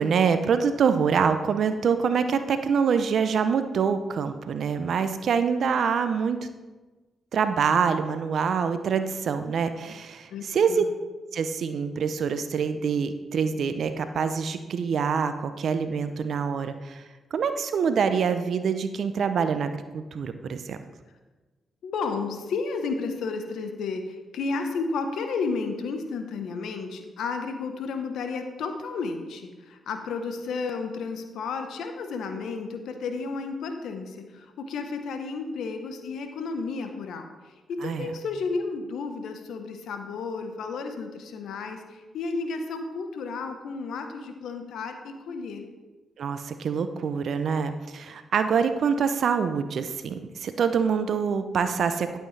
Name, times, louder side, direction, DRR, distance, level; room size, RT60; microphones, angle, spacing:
voice 1, 0.0-6.4 7.3-10.8 11.3-17.0 17.3-20.8 37.8-38.1 46.2-52.2, right 6 dB, 65° right, 9 dB, 0.6 m, -25 dB
voice 2, 10.3-10.8 21.8-45.7, left 4 dB, 75° left, 6 dB, 1.1 m, -32 dB
11.5 x 7.7 x 3.3 m, 1.2 s
supercardioid pair, 50°, 0 cm